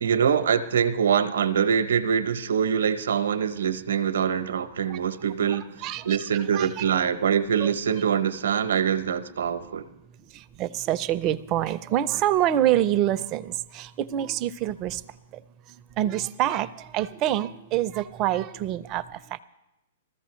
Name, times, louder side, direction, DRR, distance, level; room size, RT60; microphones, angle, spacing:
voice 1, 0.0-5.7 6.0-9.9, right 7 dB, 75° right, 11 dB, 0.8 m, -24 dB
voice 2, 5.5-6.7 7.6-7.7 10.3-15.0 16.0-19.4, right 12 dB, 35° right, 12 dB, 0.5 m, -26 dB
20.5 x 14.5 x 3.1 m, 0.89 s
hypercardioid pair, 125°, 0 cm